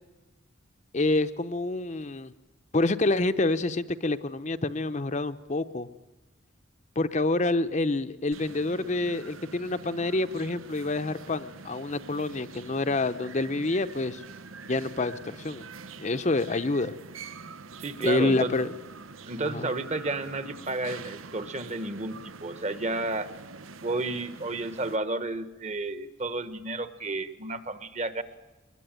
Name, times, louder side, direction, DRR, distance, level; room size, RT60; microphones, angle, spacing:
voice 1, 0.9-2.3 2.7-5.9 7.0-14.2 14.6-15.7 16.0-16.9 18.0-18.7 19.4-19.7, left 2 dB, 35° left, 11 dB, 0.7 m, -27 dB
sound 1, 8.3-25.0, right 4 dB, 90° right, 0.9 m, -45 dB
voice 2, 17.8-18.6 19.3-23.3 23.8-28.2, right 2 dB, 35° right, 11 dB, 1.3 m, -32 dB
22.5 x 20.5 x 9.1 m, 1.1 s
head